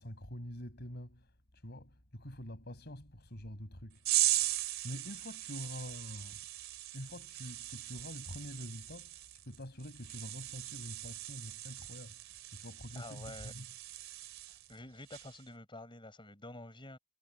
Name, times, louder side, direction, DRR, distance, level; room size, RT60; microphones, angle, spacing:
voice 1, 0.0-4.5 4.8-6.4 6.9-12.2 12.5-13.7, equal, 50° left, 5.5 m, -46 dB
sound 1, 4.0-14.7 15.1-15.4, right 15 dB, 65° right, 3.5 m, -38 dB
voice 2, 12.9-13.6 14.7-17.0, left 2 dB, 25° left, 6.6 m, -49 dB
head